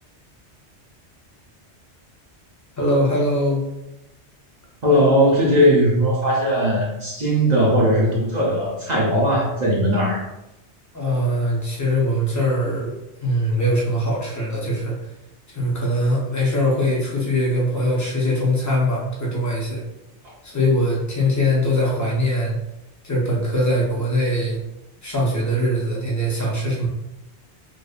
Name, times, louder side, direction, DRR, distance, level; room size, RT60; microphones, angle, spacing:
voice 1, 2.8-3.7 10.9-14.9 15.5-19.8 20.4-22.6 23.0-24.6 25.0-26.9, equal, 25° left, -4 dB, 0.4 m, -22 dB
voice 2, 4.8-10.2, equal, 55° right, -4 dB, 0.5 m, -18 dB
2.7 x 2.1 x 2.3 m, 0.91 s
omnidirectional pair, 1.2 m